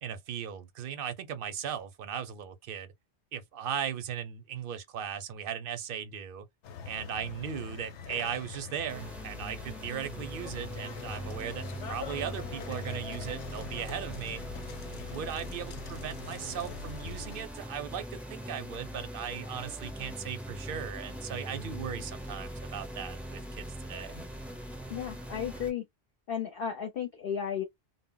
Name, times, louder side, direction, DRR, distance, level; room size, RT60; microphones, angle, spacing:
voice 1, 0.0-2.9 3.3-6.5 6.8-14.4 15.1-24.3, right 8 dB, 60° right, 0.7 m, -38 dB
sound 1, 6.6-17.4, left 7 dB, 85° left, 0.9 m, -44 dB
sound 2, 8.9-25.7, equal, ahead, 0.4 m, -41 dB
voice 2, 24.9-25.8 26.3-27.6, left 8 dB, 60° left, 0.7 m, -34 dB
2.1 x 2.0 x 3.7 m
omnidirectional pair, 1.2 m